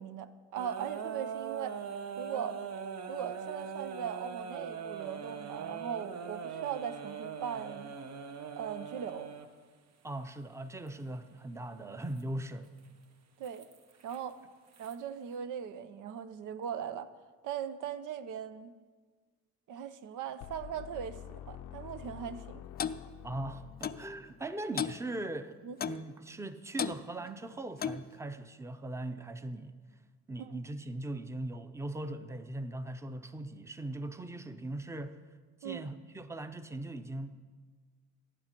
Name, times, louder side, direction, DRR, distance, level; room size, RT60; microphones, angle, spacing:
voice 1, 0.0-1.8 2.2-2.6 3.1-7.9 8.6-9.3 13.4-13.7 14.0-14.4 14.8-17.1 17.4-18.7 19.7-22.6 25.6-25.8 30.4-30.6 35.6-35.8, right 8 dB, 85° right, 12 dB, 0.7 m, -39 dB
sound 1, 0.5-9.5 10.9-11.0 12.1-12.2 13.4-14.2 14.7-14.9, right 6 dB, 60° right, 1.0 m, -41 dB
voice 2, 10.0-12.7 23.2-25.6 25.8-29.8 30.3-35.2 35.6-37.4, right 1 dB, 10° right, 10 dB, 0.7 m, -40 dB
sound 2, 20.4-24.4, left 11 dB, 80° left, 0.6 m, -48 dB
Clock, 22.8-23.0 23.8-24.0 24.8-25.0 25.8-26.0 26.8-27.0 27.8-28.1, left 8 dB, 30° left, 0.4 m, -34 dB
17.5 x 9.1 x 4.5 m, 1.5 s
cardioid pair, 90°, 30 cm